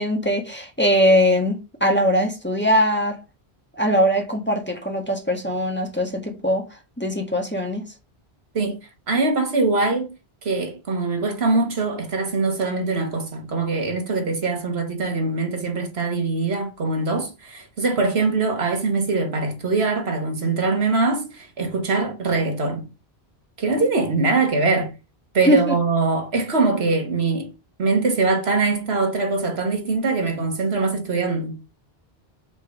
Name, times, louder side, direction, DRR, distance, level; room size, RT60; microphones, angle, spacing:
voice 1, 0.0-3.2 3.7-6.6 7.0-7.8 25.5-25.7, equal, 10° left, 1.5 m, -21 dB
voice 2, 9.1-10.1 10.4-22.9 23.6-24.9 25.3-27.5 27.8-31.6, right 3 dB, 80° right, 1.8 m, -22 dB
5.2 x 4.7 x 5.8 m
omnidirectional pair, 1.1 m